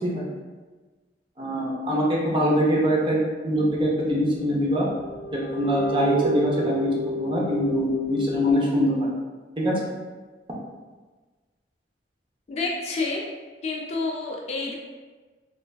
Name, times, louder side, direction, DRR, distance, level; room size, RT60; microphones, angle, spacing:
voice 1, 1.4-4.9 5.3-9.1 9.6-9.8, equal, 30° right, -4 dB, 0.5 m, -23 dB
sound 1, 3.8-3.9 4.5-8.5, equal, 85° right, 1.0 m, -30 dB
voice 2, 12.5-13.3 13.6-14.7, left 3 dB, 40° left, -1 dB, 0.3 m, -29 dB
3.2 x 2.4 x 2.2 m, 1.3 s
head